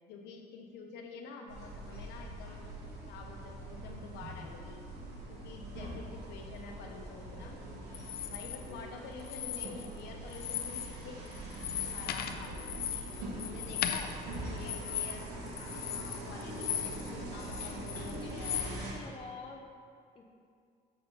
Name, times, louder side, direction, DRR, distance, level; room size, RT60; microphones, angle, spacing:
voice 1, 0.1-2.7 3.1-4.8 5.3-7.6 8.2-11.3 11.8-12.9 13.4-14.2 14.5-15.3 15.7-18.7, left 4 dB, 85° left, 2 dB, 0.9 m, -48 dB
sound 1, 1.5-18.9, right 1 dB, 80° right, 1.7 m, -43 dB
sound 2, 7.9-8.6 9.2-10.0 10.3-11.0 11.3-17.1 17.4-18.7, left 10 dB, 70° left, 0.5 m, -37 dB
voice 2, 17.1-17.9 18.2-19.7 20.1-20.2, left 4 dB, 30° left, 0 dB, 0.8 m, -49 dB
6.9 x 4.2 x 5.2 m, 2.3 s
cardioid pair, 110°, 17 cm